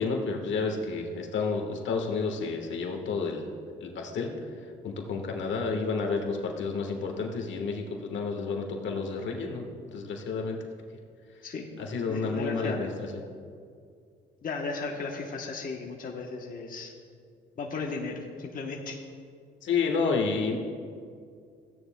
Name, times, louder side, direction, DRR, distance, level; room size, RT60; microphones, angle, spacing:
voice 1, 0.0-3.5 3.8-4.3 4.8-10.6 11.8-12.9 19.6-20.6, left 4 dB, 70° left, 2 dB, 1.4 m, -30 dB
voice 2, 12.1-12.9 14.4-16.9 17.6-19.0, left 4 dB, 45° left, 0 dB, 1.0 m, -35 dB
15.5 x 9.9 x 2.2 m, 2.2 s
cardioid pair, 90°, 20 cm